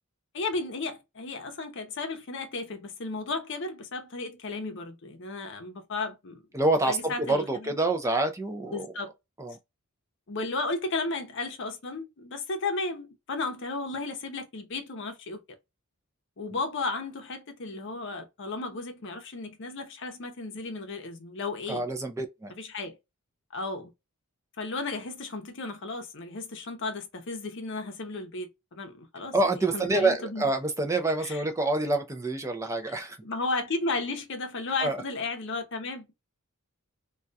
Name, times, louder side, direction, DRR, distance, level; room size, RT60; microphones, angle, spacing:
voice 1, 0.3-6.4 6.9-7.9 8.7-9.1 10.3-15.4 16.4-21.8 22.6-23.0 23.5-23.9 24.6-30.5 31.2-31.4 32.8-32.9 33.2-36.1, left 3 dB, 55° left, 0.6 m, -34 dB
voice 2, 6.5-8.9 9.4-9.6 21.7-22.5 29.3-33.2 34.8-35.0, right 2 dB, 15° right, 0.3 m, -27 dB
2.3 x 2.2 x 2.6 m
head